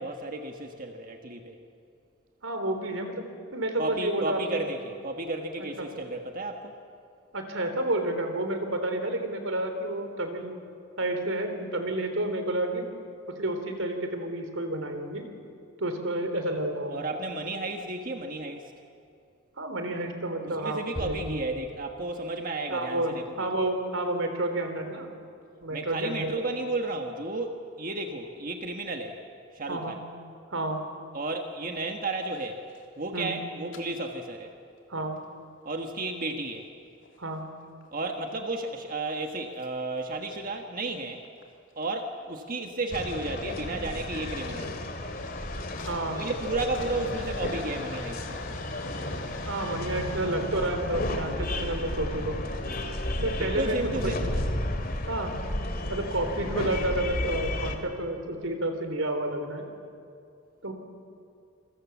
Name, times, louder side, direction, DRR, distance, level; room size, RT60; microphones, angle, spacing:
voice 1, 0.0-1.6 3.8-6.7 16.9-18.7 20.4-23.2 25.7-29.2 29.5-30.0 31.1-32.6 33.0-34.5 35.6-36.7 37.9-41.2 41.7-44.9 46.1-48.6 53.4-54.3, right 2 dB, 40° right, 4 dB, 1.5 m, -33 dB
voice 2, 2.4-3.2 3.5-4.6 5.8-5.9 7.3-10.6 11.0-12.9 13.4-15.3 15.8-17.1 19.6-21.4 22.7-25.1 25.6-26.3 29.7-30.0 30.5-30.8 33.1-33.3 34.9-35.2 37.2-37.5 45.8-46.2 49.5-52.4 53.2-54.4 55.1-55.3 55.9-59.7 60.6-60.7, right 1 dB, 75° right, 6 dB, 3.7 m, -30 dB
sound 1, 20.9-22.3, equal, 10° right, 4.5 m, -40 dB
sound 2, 32.2-33.0 33.7-33.8 35.0-35.2 35.8-35.9 36.4-37.2 37.6-38.3 39.6-39.7 40.3-40.4 40.8-41.8 42.9-43.2 43.7-43.8 44.1-50.3, left 3 dB, 65° left, 3.1 m, -46 dB
sound 3, 42.9-57.8, left 1 dB, 45° left, 2.5 m, -33 dB
28.0 x 24.0 x 7.3 m, 2.5 s
head